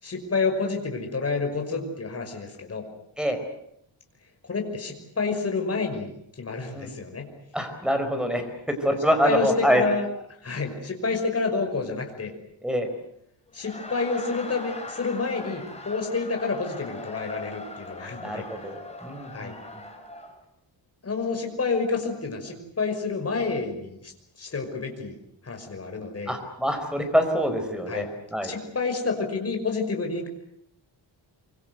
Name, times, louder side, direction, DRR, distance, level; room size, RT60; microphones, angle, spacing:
voice 1, 0.0-2.8 4.5-6.1 6.4-7.3 9.2-10.1 10.4-12.3 13.5-18.5 19.3-19.6 21.0-24.1 24.4-25.2 25.4-26.3 27.9-28.1 28.4-30.3, left 4 dB, 35° left, 3 dB, 5.7 m, -29 dB
voice 2, 7.5-8.4 8.8-9.9 12.6-12.9 18.2-19.8 26.3-28.5, equal, ahead, 6 dB, 4.7 m, -25 dB
Laughter, 13.5-20.3, left 2 dB, 15° left, 5.4 m, -40 dB
25.0 x 25.0 x 8.0 m, 0.76 s
wide cardioid pair, 150°, 43 cm